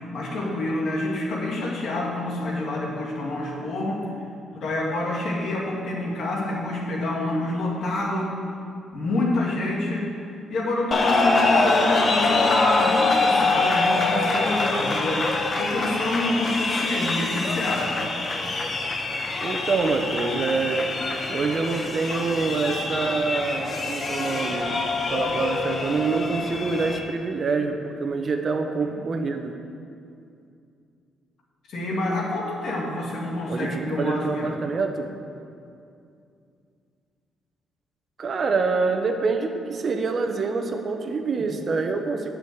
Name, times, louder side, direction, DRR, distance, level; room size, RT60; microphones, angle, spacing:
voice 1, 0.1-4.0 4.5-8.4 8.9-15.3 15.6-18.1 28.8-29.0 31.7-34.6 41.4-41.5, left 2 dB, 65° left, -3 dB, 2.3 m, -27 dB
sound 1, 10.9-27.0, left 3 dB, 40° left, 1.1 m, -24 dB
voice 2, 19.4-20.9 21.3-29.5 33.5-35.1 38.2-42.3, right 4 dB, 45° right, 5 dB, 0.9 m, -26 dB
8.6 x 6.3 x 7.8 m, 2.5 s
cardioid pair, 90°, 0 cm